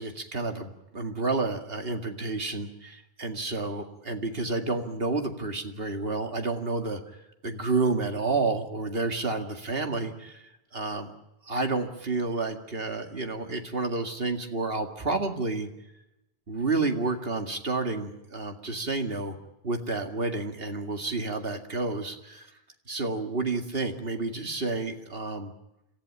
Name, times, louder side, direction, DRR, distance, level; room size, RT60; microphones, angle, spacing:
voice 1, 0.0-7.0 7.4-10.4 10.7-11.1 11.4-15.7 16.5-19.4 19.6-22.5 22.9-25.5, right 3 dB, 65° right, 6 dB, 2.4 m, -30 dB
27.0 x 15.0 x 10.0 m, 0.90 s
omnidirectional pair, 1.0 m